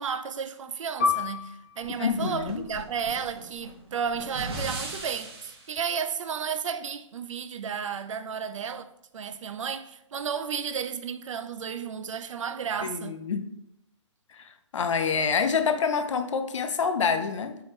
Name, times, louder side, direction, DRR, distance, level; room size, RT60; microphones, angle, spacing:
voice 1, 0.0-13.2, right 7 dB, 75° right, 0.4 m, -33 dB
Piano, 1.0-6.0 6.4-6.5 7.3-7.7, left 5 dB, 25° left, 0.4 m, -34 dB
sound 1, 1.8-5.7, right 2 dB, 50° right, 1.1 m, -39 dB
voice 2, 2.0-2.6 12.8-13.5 14.3-14.4 14.7-17.6, left 6 dB, 75° left, 0.6 m, -27 dB
4.4 x 3.6 x 2.7 m
hypercardioid pair, 155°, 16 cm